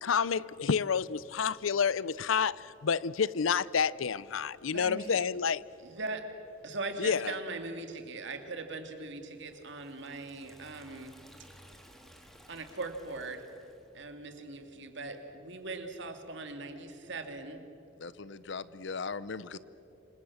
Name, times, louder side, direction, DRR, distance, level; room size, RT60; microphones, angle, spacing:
voice 1, 0.0-5.6 7.0-7.4, left 6 dB, 90° left, 0.6 m, -29 dB
voice 2, 4.7-5.2 5.8-6.3 6.6-11.2 12.5-13.4 13.9-17.7, right 3 dB, 65° right, 2.5 m, -40 dB
Liquid, 9.3-14.0, equal, ahead, 2.6 m, -57 dB
voice 3, 18.0-19.6, left 4 dB, 65° left, 0.8 m, -39 dB
28.0 x 25.5 x 7.2 m
head